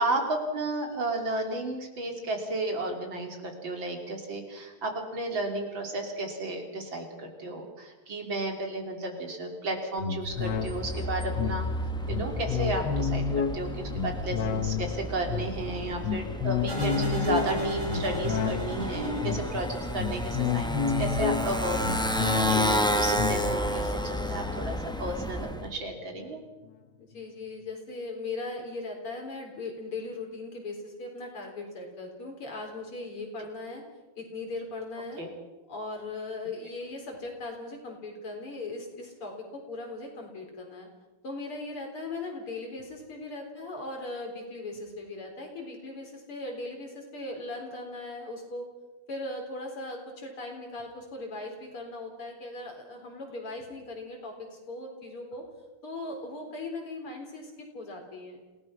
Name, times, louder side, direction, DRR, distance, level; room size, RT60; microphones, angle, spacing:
voice 1, 0.0-11.7 12.1-13.2 13.5-21.8 22.1-26.4 35.2-35.3, right 2 dB, 60° right, 3 dB, 3.8 m, -33 dB
sound 1, 10.0-25.7 26.1-26.2, left 6 dB, 60° left, 1.6 m, -31 dB
Motorcycle, 10.3-25.7, equal, 5° left, 0.6 m, -32 dB
sound 2, 16.7-20.0, equal, 20° right, 5.7 m, -34 dB
voice 2, 27.0-33.8 34.2-35.2 35.7-40.9 41.2-48.7 49.1-55.5 55.8-58.4, left 2 dB, 80° left, 1 dB, 5.0 m, -39 dB
27.5 x 17.5 x 6.0 m, 1.2 s
omnidirectional pair, 2.4 m